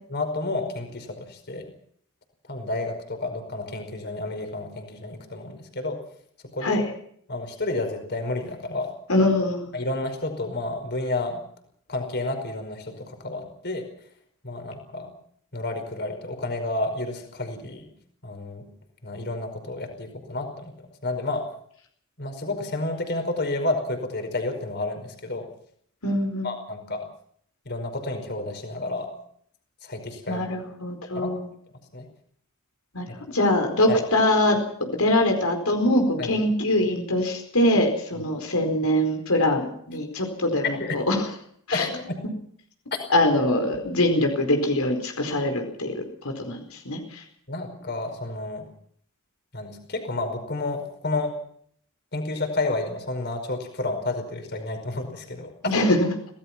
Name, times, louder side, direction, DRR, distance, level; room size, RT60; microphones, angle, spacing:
voice 1, 0.1-1.7 2.5-6.0 6.5-6.8 7.3-8.9 9.7-11.4 11.9-13.9 14.4-15.1 15.5-17.8 18.2-18.6 19.0-20.7 21.0-21.4 22.2-25.5 26.4-27.1 27.6-29.1 29.8-30.5 31.1-31.3 31.9-32.0 33.9-34.0 36.2-36.3 40.6-41.0 41.7-42.2 47.5-48.6 49.5-51.3 52.1-55.7, left 2 dB, 50° left, 6 dB, 5.1 m, -30 dB
voice 2, 9.1-9.7 26.0-26.5 30.3-31.5 32.9-33.1 33.3-34.6 34.9-41.2 41.7-41.9 43.1-46.0 46.4-46.6 46.8-47.2 55.6-56.1, left 1 dB, 90° left, 4 dB, 4.7 m, -23 dB
26.0 x 17.5 x 6.0 m, 0.63 s
head